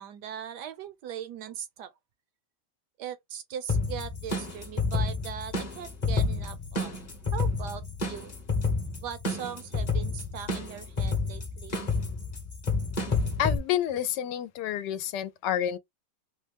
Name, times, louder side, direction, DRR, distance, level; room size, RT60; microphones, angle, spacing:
voice 1, 0.0-2.0 3.0-6.9 7.3-8.3 9.0-11.8, right 9 dB, 75° right, 1.2 m, -40 dB
sound 1, 3.7-13.6, left 3 dB, 30° left, 0.9 m, -30 dB
voice 2, 13.4-15.8, left 10 dB, 80° left, 1.2 m, -29 dB
4.2 x 2.1 x 3.3 m
omnidirectional pair, 1.9 m